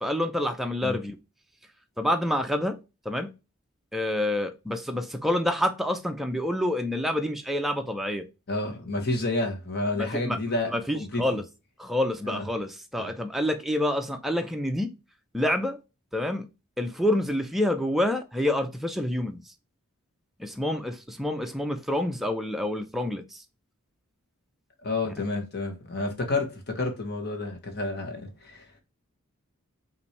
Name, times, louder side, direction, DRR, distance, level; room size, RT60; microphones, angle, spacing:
voice 1, 0.0-1.2 2.0-2.8 3.1-3.3 3.9-8.2 9.9-10.4 10.7-11.4 11.8-14.9 15.3-15.8 16.1-16.5 16.8-19.4 20.4-23.4 25.1-25.2, left 1 dB, ahead, 0.4 m, -27 dB
voice 2, 8.5-11.2 12.2-12.5 13.0-13.1 24.8-28.7, left 2 dB, 45° left, 1.1 m, -30 dB
5.6 x 2.6 x 3.2 m
head